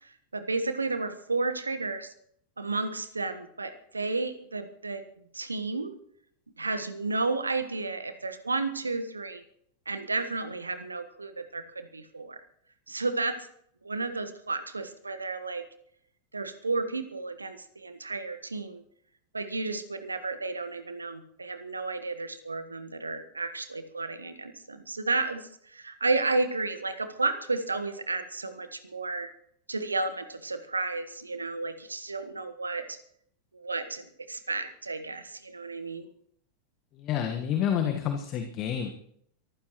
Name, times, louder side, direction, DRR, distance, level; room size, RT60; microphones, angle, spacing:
voice 1, 0.0-2.1 2.6-5.0 5.3-5.9 6.6-9.4 9.9-12.4 12.9-13.4 13.8-15.6 16.3-18.8 19.3-29.3 29.7-33.0 33.5-36.1, right 3 dB, 80° right, 9 dB, 1.4 m, -32 dB
voice 2, 37.0-38.9, left 9 dB, 35° left, 5 dB, 1.5 m, -29 dB
23.5 x 15.0 x 3.1 m, 0.68 s
figure-of-eight pair, 90°, 0 cm